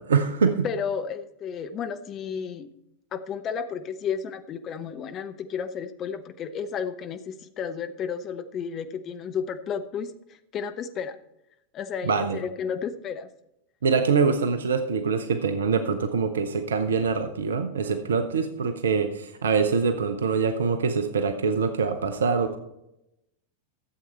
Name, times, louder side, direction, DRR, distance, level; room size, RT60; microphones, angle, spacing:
voice 1, 0.1-0.7 12.0-12.4 13.8-22.6, right 5 dB, 65° right, 9 dB, 0.7 m, -24 dB
voice 2, 0.6-2.7 3.1-10.1 10.5-11.2 11.7-13.3, left 7 dB, 30° left, 10 dB, 0.8 m, -32 dB
12.5 x 7.7 x 4.3 m, 0.85 s
figure-of-eight pair, 90°, 0 cm